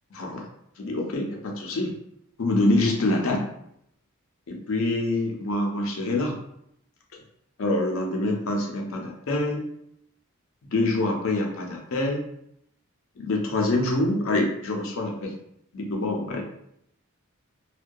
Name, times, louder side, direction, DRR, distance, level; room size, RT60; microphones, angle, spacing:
voice 1, 0.2-0.5 0.8-1.9 2.4-3.5 4.5-6.4 7.6-9.6 10.7-12.2 13.2-15.3 15.7-16.4, left 2 dB, 70° left, 0 dB, 0.5 m, -25 dB
2.2 x 2.2 x 2.5 m, 0.74 s
head